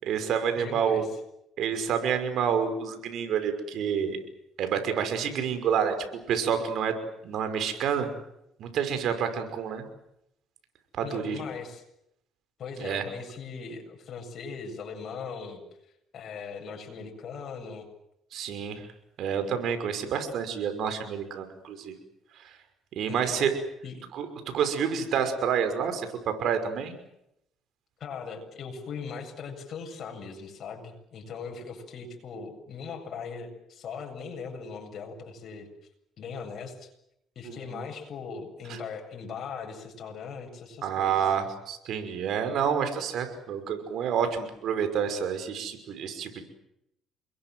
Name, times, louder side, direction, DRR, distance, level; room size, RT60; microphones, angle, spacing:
voice 1, 0.0-1.1 1.6-4.2 4.6-8.1 8.6-9.8 10.9-11.4 12.8-13.0 18.3-18.8 19.2-21.9 22.4-22.5 23.0-23.5 24.1-26.9 37.4-37.8 38.7-38.8 40.8-46.4, right 7 dB, 65° right, 8 dB, 5.8 m, -28 dB
voice 2, 0.6-1.1 11.0-11.8 12.6-15.6 16.1-17.9 23.1-23.5 23.8-24.0 28.0-35.7 36.2-36.9 37.4-41.3, left 5 dB, 55° left, 2 dB, 7.8 m, -39 dB
29.0 x 22.0 x 7.9 m, 0.79 s
cardioid pair, 90°, 0 cm